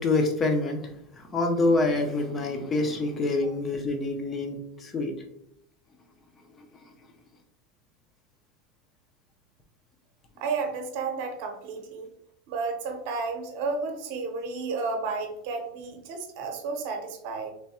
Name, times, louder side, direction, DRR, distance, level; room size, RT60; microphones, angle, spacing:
voice 1, 0.0-5.1, left 2 dB, 15° left, 4 dB, 0.5 m, -26 dB
voice 2, 10.4-12.1 12.5-17.5, right 4 dB, 50° right, 4 dB, 0.8 m, -32 dB
3.3 x 2.2 x 4.1 m, 0.76 s
supercardioid pair, 175°, 0 cm